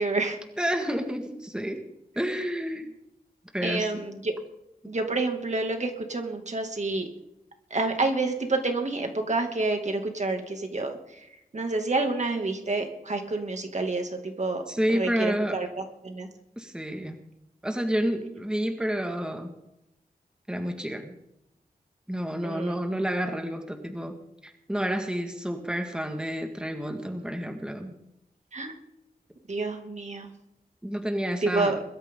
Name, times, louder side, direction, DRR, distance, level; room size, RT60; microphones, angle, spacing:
voice 1, 0.0-0.4 3.6-4.3 4.9-7.1 7.7-11.2 11.5-14.6 14.9-16.3 22.4-22.8 28.5-28.7 29.5-30.3 31.4-31.8, right 3 dB, 50° right, 4 dB, 2.4 m, -28 dB
voice 2, 0.6-1.8 2.2-2.9 3.5-4.0 14.7-15.6 16.6-17.2 17.6-19.5 20.5-21.2 22.1-27.9 30.8-31.8, equal, 5° right, 4 dB, 1.9 m, -30 dB
22.0 x 13.0 x 3.8 m, 0.85 s
wide cardioid pair, 110°, 15 cm